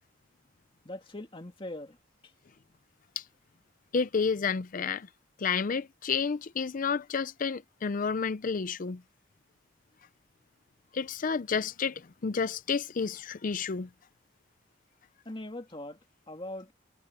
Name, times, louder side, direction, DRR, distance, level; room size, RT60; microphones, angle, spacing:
voice 1, 0.8-2.0 15.3-16.0 16.3-16.7, left 1 dB, 25° left, 2.2 m, -41 dB
voice 2, 3.9-5.1 5.4-9.0 10.9-13.9, left 5 dB, 45° left, 0.5 m, -30 dB
head